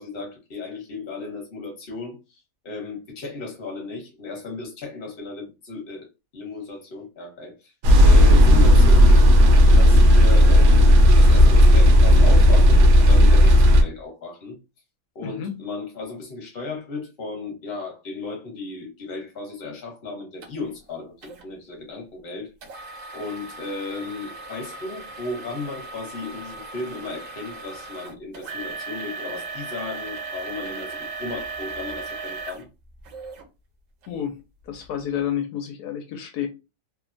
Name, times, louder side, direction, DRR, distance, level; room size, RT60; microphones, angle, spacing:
voice 1, 0.0-6.1 6.3-9.4 9.8-14.6 15.1-22.5 23.1-32.6, left 3 dB, 40° left, 1.1 m, -35 dB
sound 1, 7.8-13.8, equal, 85° right, 1.2 m, -12 dB
voice 2, 15.2-15.6 34.1-34.4 34.6-36.5, left 9 dB, 80° left, 1.1 m, -30 dB
sound 2, 20.4-20.5 21.2-21.4 22.6-33.5 34.0-34.1 34.7-34.9, right 3 dB, 65° right, 0.9 m, -37 dB
3.0 x 2.1 x 2.5 m
omnidirectional pair, 1.7 m